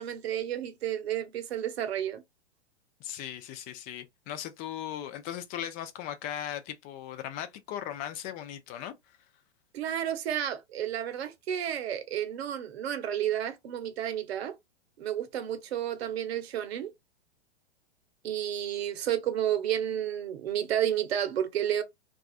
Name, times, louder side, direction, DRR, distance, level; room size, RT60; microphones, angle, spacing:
voice 1, 0.0-2.2 9.7-14.5 15.0-16.9 18.2-21.8, right 10 dB, 65° right, 0.7 m, -31 dB
voice 2, 3.0-8.9, left 11 dB, 25° left, 0.4 m, -38 dB
2.3 x 2.3 x 2.3 m
hypercardioid pair, 115°, 33 cm